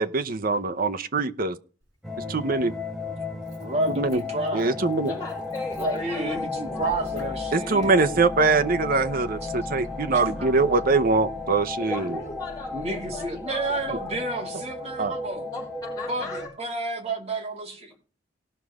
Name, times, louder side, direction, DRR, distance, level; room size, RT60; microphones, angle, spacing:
voice 1, 0.0-1.6 2.3-2.8 3.9-4.2 4.5-5.1 7.5-12.2 15.0-15.1, right 3 dB, 50° right, 0.8 m, -23 dB
Motor vehicle (road), 1.8-1.9 3.1-14.2, left 1 dB, 75° right, 5.6 m, -44 dB
sound 1, 2.0-16.5, left 4 dB, ahead, 1.2 m, -34 dB
voice 2, 3.6-4.8 5.0-5.1 5.8-7.9 9.4-9.5 10.1-10.2 12.7-15.5 16.1-18.0, right 2 dB, 35° right, 2.6 m, -30 dB
voice 3, 5.1-7.4 11.8-14.3 15.5-16.5, left 3 dB, 20° left, 4.2 m, -37 dB
18.5 x 6.3 x 3.5 m
head